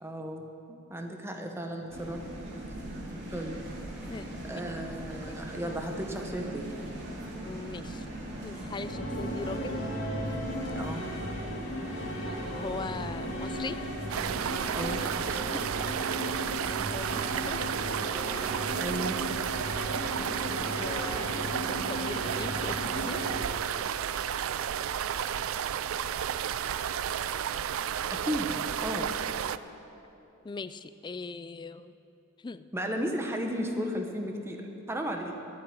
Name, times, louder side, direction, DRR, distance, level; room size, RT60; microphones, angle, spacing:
voice 1, 0.0-2.2 3.3-3.6 4.5-6.7 10.6-11.1 14.7-15.7 18.3-18.5 18.8-19.2 28.1-29.1 32.7-35.4, equal, 10° right, 3 dB, 1.1 m, -35 dB
sound 1, 1.9-15.0, right 1 dB, 60° right, 2.5 m, -41 dB
voice 2, 4.1-4.6 5.3-5.4 7.4-8.1 8.4-9.8 12.2-13.8 16.6-17.6 20.5-23.2 30.4-32.0 32.4-32.7, left 4 dB, 20° left, 14 dB, 0.3 m, -40 dB
sound 2, 8.7-23.4, equal, 65° left, 2.3 m, -36 dB
sound 3, 14.1-29.6, right 9 dB, 75° right, 0.4 m, -32 dB
11.0 x 8.5 x 9.4 m, 2.8 s
head